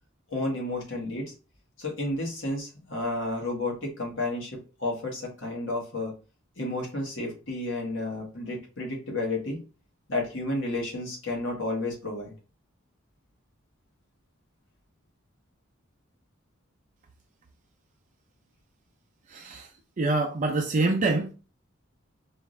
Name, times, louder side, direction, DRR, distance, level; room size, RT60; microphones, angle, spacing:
voice 1, 0.3-1.3 1.8-6.1 6.6-9.6 10.1-12.3, left 2 dB, 65° left, 1.5 m, -31 dB
voice 2, 19.3-19.7 20.0-21.3, right 2 dB, 40° right, 0.5 m, -26 dB
4.7 x 2.6 x 3.2 m
head